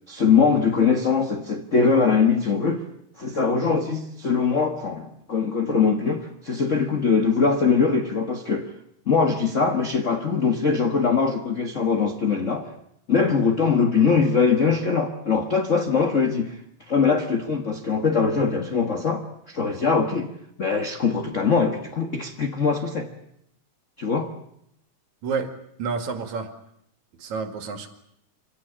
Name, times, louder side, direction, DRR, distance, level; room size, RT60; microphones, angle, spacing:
voice 1, 0.1-2.8 3.2-8.7 9.1-12.7 13.1-16.6 16.9-20.3 20.6-23.1 24.0-24.3, left 5 dB, 45° left, 1.0 m, -22 dB
voice 2, 25.8-26.5 27.2-27.9, right 5 dB, 70° right, 3.4 m, -29 dB
26.0 x 17.0 x 10.0 m
omnidirectional pair, 3.5 m